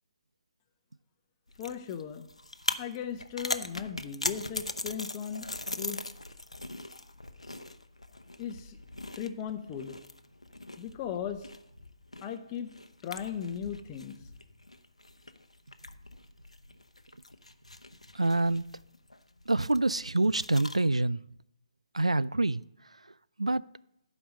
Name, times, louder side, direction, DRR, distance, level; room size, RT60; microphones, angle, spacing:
sound 1, 1.5-20.9, left 2 dB, 90° left, 0.8 m, -41 dB
voice 1, 1.6-2.3 2.8-5.5 5.8-6.0 8.4-8.8 9.2-10.0 10.8-11.5 12.2-12.7 13.0-14.2, left 8 dB, 25° left, 0.7 m, -37 dB
voice 2, 18.1-18.6 19.5-21.2 21.9-22.6 23.4-23.6, right 2 dB, 90° right, 0.3 m, -26 dB
13.0 x 5.2 x 6.4 m
figure-of-eight pair, 140°, 3 cm